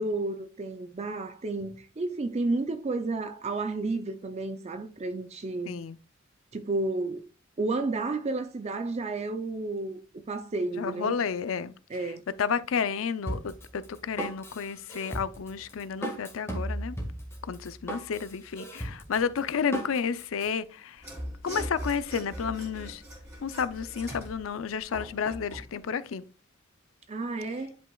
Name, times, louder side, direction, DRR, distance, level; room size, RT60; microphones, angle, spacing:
voice 1, 0.0-5.8 6.5-7.3 7.6-10.0 10.3-11.1 11.9-12.2 27.1-27.8, right 2 dB, 35° right, 0.4 m, -31 dB
voice 2, 5.7-6.0 10.7-11.7 12.4-17.0 17.4-21.1 21.4-23.0 23.4-26.2, left 6 dB, 80° left, 0.5 m, -31 dB
Drum kit, 13.3-20.5, right 1 dB, 15° left, 1.7 m, -36 dB
Mechanisms / Sawing, 21.0-25.7, equal, 15° right, 3.3 m, -40 dB
10.5 x 5.3 x 2.3 m
head